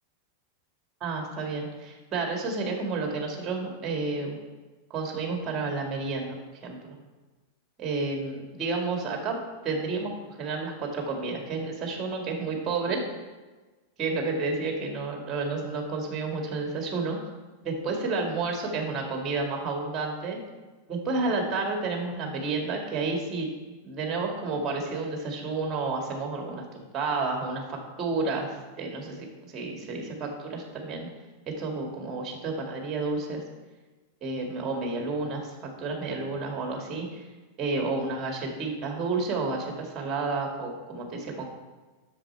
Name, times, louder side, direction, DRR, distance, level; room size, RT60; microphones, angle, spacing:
voice 1, 1.0-4.4 4.9-6.4 6.6-7.0 7.8-9.4 9.6-13.0 14.0-17.2 17.6-20.4 20.9-23.5 23.8-26.6 26.9-31.1 31.5-33.4 34.2-37.3 37.6-41.4, right 3 dB, 30° right, 2 dB, 2.1 m, -31 dB
7.5 x 6.9 x 4.5 m, 1.3 s
figure-of-eight pair, 90°, 0 cm